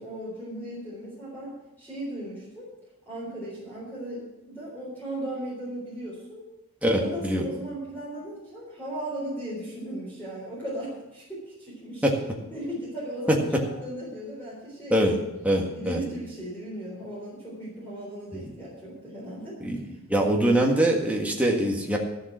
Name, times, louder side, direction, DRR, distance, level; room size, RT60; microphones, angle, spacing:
voice 1, 0.0-2.7 3.1-6.4 7.0-12.1 12.5-15.2 15.7-19.6, right 1 dB, 10° left, -7 dB, 4.0 m, -37 dB
voice 2, 6.8-7.4 12.0-12.1 13.3-13.6 14.9-15.2 15.4-16.0 18.3-18.5 19.6-19.8 20.1-22.0, right 1 dB, 5° right, -1 dB, 1.7 m, -23 dB
13.0 x 7.3 x 7.4 m, 0.98 s
head